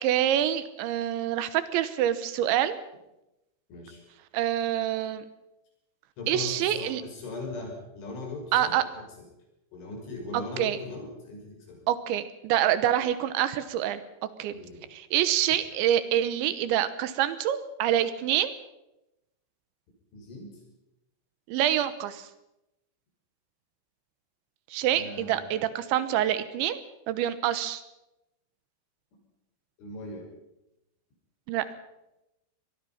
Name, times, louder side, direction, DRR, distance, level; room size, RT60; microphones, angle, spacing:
voice 1, 0.0-2.8 4.3-5.2 6.3-7.0 8.5-8.8 10.3-10.8 11.9-14.0 14.4-14.5 14.9-18.6 21.5-22.3 24.7-26.8 27.1-27.8 31.5-31.6, right 11 dB, 75° right, 13 dB, 3.3 m, -26 dB
voice 2, 3.7-4.0 6.2-9.0 9.7-11.9 14.5-14.9 20.1-20.6 24.9-25.6 29.8-30.3, left 2 dB, 75° left, 2 dB, 8.2 m, -39 dB
24.5 x 19.5 x 5.7 m, 0.90 s
omnidirectional pair, 5.5 m